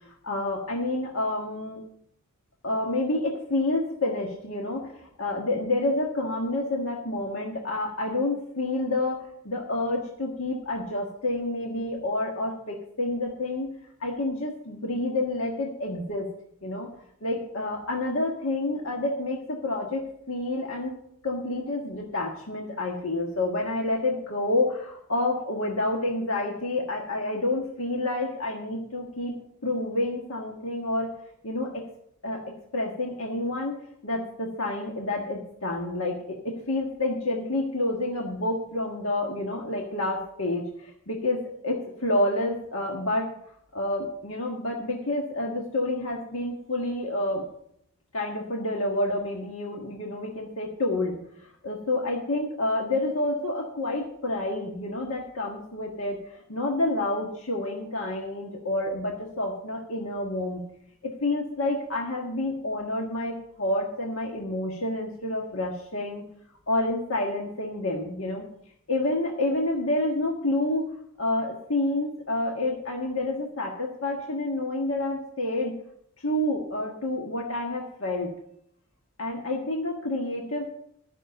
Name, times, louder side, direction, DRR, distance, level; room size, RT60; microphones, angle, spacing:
voice 1, 0.0-1.8 2.6-13.7 14.0-16.3 16.6-16.9 17.2-20.9 21.2-29.3 29.6-31.1 31.4-31.8 32.2-32.4 32.7-33.7 34.0-43.3 43.7-47.4 48.1-60.6 61.0-66.2 66.7-68.4 68.9-70.9 71.2-75.7 76.2-78.3 79.2-80.7, left 2 dB, 75° left, 0 dB, 1.6 m, -29 dB
13.0 x 6.0 x 6.8 m, 0.71 s
head